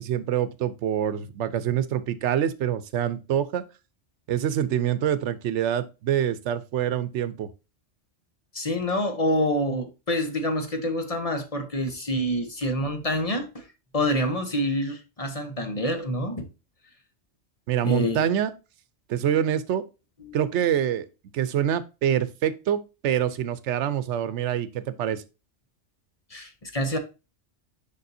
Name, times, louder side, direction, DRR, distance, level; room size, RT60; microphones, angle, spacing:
voice 1, 0.0-3.6 4.3-7.5 17.7-18.5 19.1-19.8 20.3-21.1 21.3-25.2, right 10 dB, 85° right, 1.0 m, -25 dB
voice 2, 8.5-13.6 13.9-16.5 17.8-18.3 20.2-20.4 26.3-27.0, equal, 35° left, 1.0 m, -27 dB
6.7 x 5.4 x 2.6 m
omnidirectional pair, 1.2 m